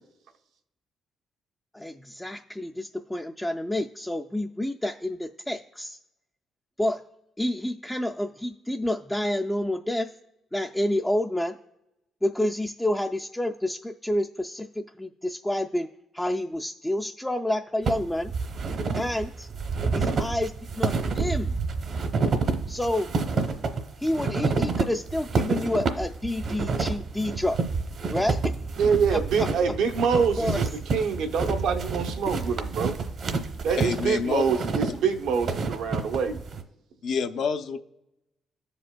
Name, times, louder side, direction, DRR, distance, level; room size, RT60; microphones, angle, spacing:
voice 1, 1.7-6.0 6.8-7.0 7.4-10.1 10.5-11.6 12.2-15.9 16.1-18.3 18.9-19.5 19.9-21.6 22.7-23.1 24.0-27.6 28.1-28.5 29.1-29.5 30.1-30.6, left 1 dB, 10° left, 0.3 m, -29 dB
sound 1, 17.9-36.6, right 4 dB, 60° right, 0.8 m, -29 dB
voice 2, 28.8-33.0 33.6-36.4, right 6 dB, 85° right, 0.8 m, -25 dB
voice 3, 33.8-34.4 37.0-37.8, left 6 dB, 70° left, 0.5 m, -27 dB
14.0 x 5.1 x 2.2 m
cardioid pair, 90°, 0 cm